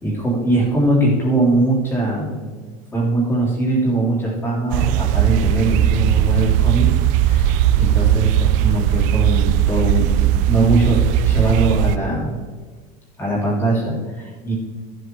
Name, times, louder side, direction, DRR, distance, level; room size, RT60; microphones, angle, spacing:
voice 1, 0.0-2.5 2.9-6.9 7.1-12.3 13.2-14.5, right 2 dB, 10° left, -4 dB, 3.0 m, -21 dB
sound 1, 4.7-12.0, right 11 dB, 40° right, 0.5 m, -17 dB
14.0 x 7.8 x 3.7 m, 1.5 s
cardioid pair, 175°, 19 cm